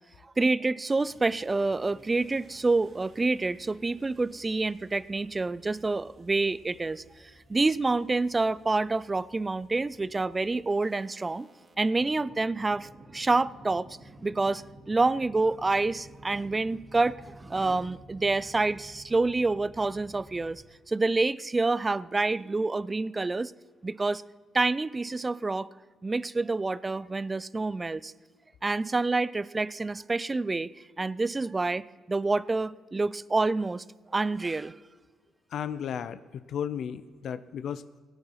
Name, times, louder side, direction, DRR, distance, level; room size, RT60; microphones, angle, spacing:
voice 1, 0.4-7.0 7.5-11.5 11.8-13.9 14.2-23.5 23.8-24.2 24.5-25.7 26.0-28.1 28.6-30.7 31.0-33.8 34.1-34.7, right 3 dB, 20° right, 0.4 m, -27 dB
sound 1, 1.0-20.6, right 1 dB, 45° right, 2.3 m, -54 dB
voice 2, 35.5-38.0, left 8 dB, 65° left, 0.5 m, -34 dB
16.0 x 9.6 x 5.7 m
cardioid pair, 90°, 0 cm